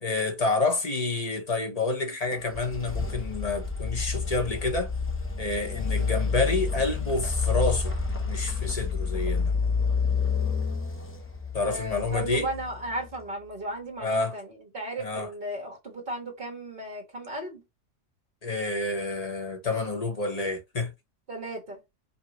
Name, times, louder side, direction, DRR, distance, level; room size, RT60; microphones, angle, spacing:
voice 1, 0.0-4.9 5.4-7.9 8.2-9.5 11.5-12.5 14.0-14.3 15.0-15.3 18.4-20.9, left 3 dB, 35° left, 1.0 m, -28 dB
sound 1, 2.3-13.1, left 5 dB, 15° left, 0.6 m, -29 dB
voice 2, 11.6-17.6 21.3-21.8, right 1 dB, 45° right, 1.7 m, -35 dB
5.3 x 2.3 x 3.0 m
omnidirectional pair, 1.2 m